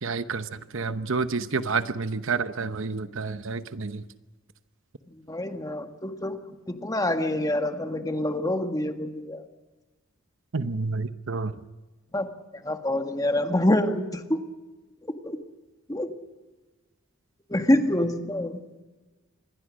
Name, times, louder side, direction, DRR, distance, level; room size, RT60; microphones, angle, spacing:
voice 1, 0.0-4.0 10.5-11.5, right 4 dB, 65° right, 11 dB, 1.0 m, -29 dB
voice 2, 5.3-6.4 6.7-9.4 12.1-12.3 12.6-14.4 15.2-15.4 15.9-16.1 17.5-18.6, left 1 dB, 15° left, 6 dB, 1.7 m, -26 dB
26.5 x 21.5 x 6.4 m, 1.2 s
head